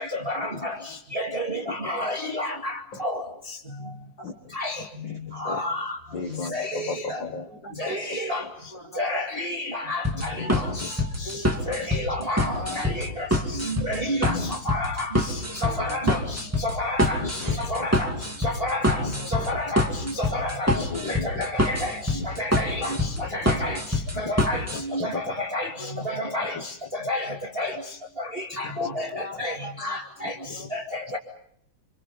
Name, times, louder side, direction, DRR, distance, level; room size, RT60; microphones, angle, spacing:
voice 1, 0.0-0.7 1.1-2.7 3.0-3.2 4.5-4.8 5.4-6.0 6.5-7.2 7.8-8.4 9.0-10.6 11.7-13.1 13.7-14.3 14.7-15.1 15.6-16.2 16.6-17.2 17.6-18.1 18.4-19.0 19.3-19.9 20.2-20.7 21.1-22.0 22.2-23.8 24.2-24.6 24.9-25.7 26.1-26.6 27.1-27.7 28.6-29.5 29.8-30.3 30.7-31.2, left 1 dB, 20° right, 1 dB, 2.0 m, -29 dB
voice 2, 3.6-4.3 7.2-7.9 8.4-9.2 11.2-12.0 12.5-13.2 13.7-13.8 15.6-16.0 18.4-18.6 19.0-19.3 20.1-20.2 25.8-26.0 28.8-30.7, equal, 30° left, 1 dB, 3.6 m, -43 dB
voice 3, 6.1-7.5 10.4-10.8 12.7-12.9 14.3-14.5 17.2-17.6 19.0-19.1 19.4-19.5 20.7-21.4 23.2-23.5 24.7-25.2 25.8-25.9 26.5-26.6 28.8-28.9, left 4 dB, 50° left, 6 dB, 1.7 m, -35 dB
sound 1, 10.0-24.8, left 1 dB, 5° right, 2.0 m, -26 dB
27.5 x 26.5 x 5.5 m, 0.69 s
omnidirectional pair, 3.4 m